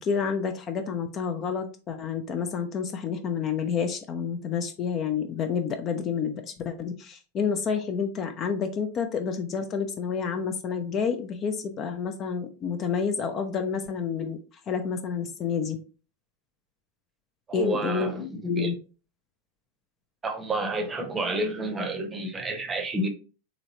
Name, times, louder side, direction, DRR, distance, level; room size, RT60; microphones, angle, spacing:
voice 1, 0.0-14.4 14.7-15.8 17.5-18.1 18.4-18.7, left 6 dB, 30° left, 6 dB, 0.4 m, -29 dB
voice 2, 17.5-18.7 20.2-23.1, right 1 dB, 20° right, 6 dB, 0.7 m, -29 dB
3.9 x 3.1 x 2.7 m, 0.36 s
figure-of-eight pair, 90°, 0 cm